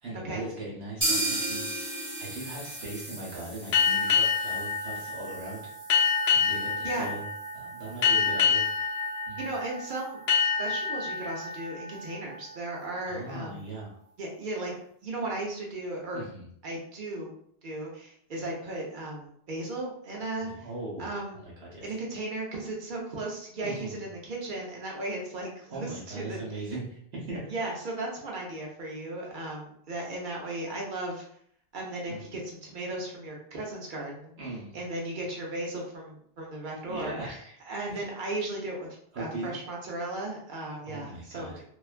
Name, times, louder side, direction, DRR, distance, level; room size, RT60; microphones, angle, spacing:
voice 1, 0.0-1.7 2.2-5.7 6.3-7.3 7.5-8.6 9.3-9.5 13.1-13.9 16.1-16.5 20.4-21.9 23.6-24.0 25.7-27.5 32.1-32.2 34.4-34.7 36.9-37.6 37.9-38.1 39.1-39.6 40.8-41.5, right 2 dB, 75° right, -4 dB, 0.9 m, -39 dB
sound 1, 1.0-8.7 9.0-9.1 9.4-9.5 10.0-10.1, right 1 dB, 15° right, 0.6 m, -36 dB
sound 2, 3.7-13.0, left 6 dB, 80° left, 0.8 m, -28 dB
voice 2, 6.8-7.1 9.4-10.2 10.6-13.6 14.2-14.7 15.0-16.2 16.6-17.3 17.6-20.7 21.0-21.4 21.8-26.6 27.5-31.2 31.7-34.3 34.7-37.3 37.6-38.9 39.2-41.6, right 2 dB, 60° right, -2 dB, 0.7 m, -36 dB
2.4 x 2.2 x 2.4 m, 0.67 s
omnidirectional pair, 1.1 m